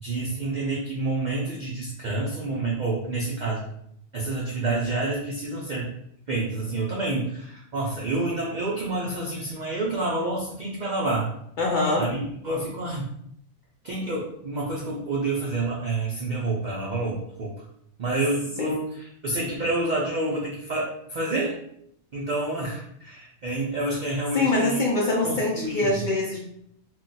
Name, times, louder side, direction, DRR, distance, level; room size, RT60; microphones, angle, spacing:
voice 1, 0.0-3.6 4.1-5.9 6.3-11.3 12.0-13.1 13.8-17.5 18.0-21.5 22.1-24.8 25.2-26.1, right 2 dB, 65° right, -4 dB, 0.4 m, -28 dB
voice 2, 11.6-12.1 18.6-18.8 24.3-26.4, left 2 dB, 65° left, -2 dB, 0.4 m, -24 dB
2.4 x 2.2 x 3.9 m, 0.72 s
omnidirectional pair, 1.4 m